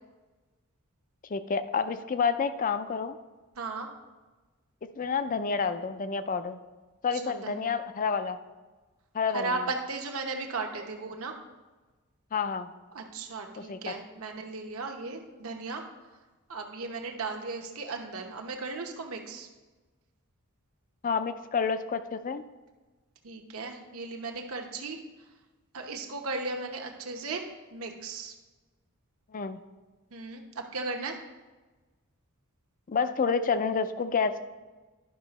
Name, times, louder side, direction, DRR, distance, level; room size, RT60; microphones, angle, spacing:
voice 1, 1.3-3.2 5.0-6.6 7.0-8.4 9.1-9.7 12.3-12.7 13.6-13.9 21.0-22.4 29.3-29.6 32.9-34.4, left 5 dB, 35° left, 11 dB, 0.4 m, -29 dB
voice 2, 3.5-3.9 7.1-7.7 9.3-11.4 12.9-15.8 16.5-19.5 23.2-25.0 25.7-28.3 30.1-31.2, right 3 dB, 70° right, 2 dB, 0.9 m, -36 dB
11.0 x 5.8 x 4.1 m, 1.2 s
head